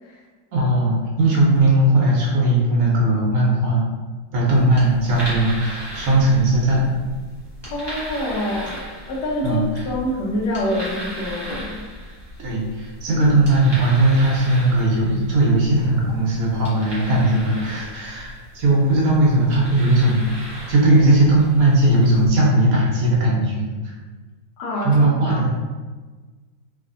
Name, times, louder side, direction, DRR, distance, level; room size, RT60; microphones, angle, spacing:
voice 1, 0.5-3.9 4.3-6.9 9.4-9.8 12.4-23.9 24.8-25.5, right 1 dB, 65° right, -4 dB, 1.1 m, -18 dB
sound 1, 4.5-22.3, equal, 20° right, 0.7 m, -37 dB
voice 2, 7.7-8.8 9.1-9.6 9.9-11.8 24.6-25.4, left 1 dB, 80° left, -3 dB, 1.3 m, -26 dB
3.1 x 2.6 x 2.5 m, 1.3 s
omnidirectional pair, 1.8 m